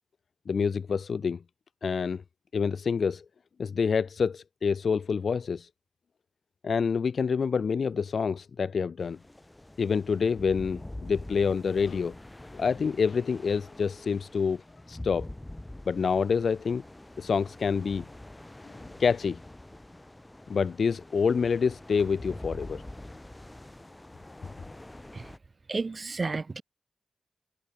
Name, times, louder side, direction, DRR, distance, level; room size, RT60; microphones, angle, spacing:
voice 1, 0.5-1.4 1.8-2.2 2.5-3.2 3.6-5.7 6.6-9.2 9.8-12.1 12.5-15.3 15.9-16.8 17.2-18.1 18.6-18.7 19.0-19.4 20.5-22.8, left 5 dB, 70° left, 0.4 m, -27 dB
sound 1, 9.0-25.4, left 1 dB, 20° left, 1.4 m, -45 dB
voice 2, 25.7-26.6, right 3 dB, 50° right, 0.5 m, -32 dB
cardioid pair, 45°, 0 cm